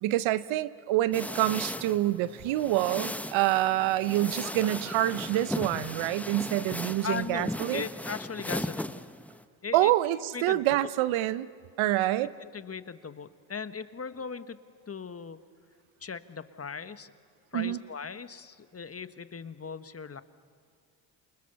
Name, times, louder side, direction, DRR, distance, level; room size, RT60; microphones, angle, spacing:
voice 1, 0.0-7.9 9.7-11.5 11.8-12.3 17.5-17.8, right 14 dB, 70° right, 15 dB, 1.0 m, -27 dB
sound 1, 1.1-9.4, left 1 dB, 5° left, 0.9 m, -37 dB
sound 2, 4.4-7.8, right 4 dB, 35° right, 3.3 m, -49 dB
voice 2, 7.0-8.9 9.6-9.9 10.3-10.9 12.4-14.6 14.9-15.4 16.0-17.1 17.5-20.2, left 6 dB, 30° left, 12 dB, 1.4 m, -38 dB
29.0 x 28.5 x 7.1 m, 2.2 s
hypercardioid pair, 60°, 49 cm